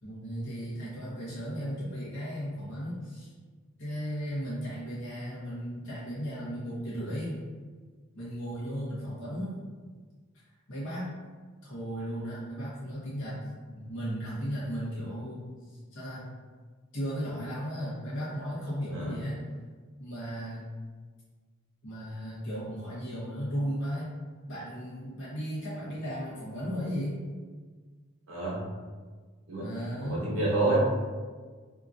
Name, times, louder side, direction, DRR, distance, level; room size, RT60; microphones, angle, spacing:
voice 1, 0.0-3.3 3.8-7.4 8.1-9.5 10.7-11.1 11.6-13.4 13.7-15.4 15.9-16.3 16.9-19.4 20.0-20.7 21.8-24.1 24.5-27.2 29.6-30.3, equal, 60° left, -9 dB, 1.0 m, -35 dB
voice 2, 28.3-28.7 29.5-29.7 30.0-30.8, right 2 dB, 70° right, -5 dB, 0.9 m, -28 dB
2.9 x 2.4 x 2.6 m, 1.5 s
head